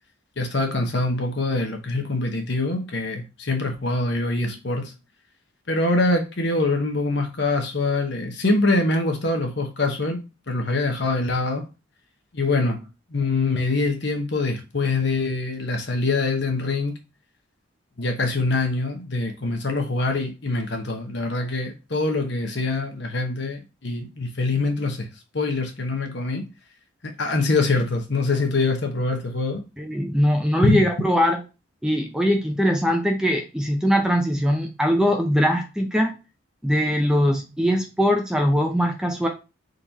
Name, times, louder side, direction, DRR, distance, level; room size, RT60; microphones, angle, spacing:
voice 1, 0.4-4.9 5.7-10.2 10.5-11.7 12.3-12.8 13.1-17.0 18.0-25.1 25.3-26.5 27.0-29.6 30.6-30.9, left 3 dB, 55° left, 0.9 m, -24 dB
voice 2, 29.8-31.4 31.8-36.1 36.6-39.3, equal, 5° right, 0.6 m, -21 dB
3.9 x 3.1 x 4.0 m
head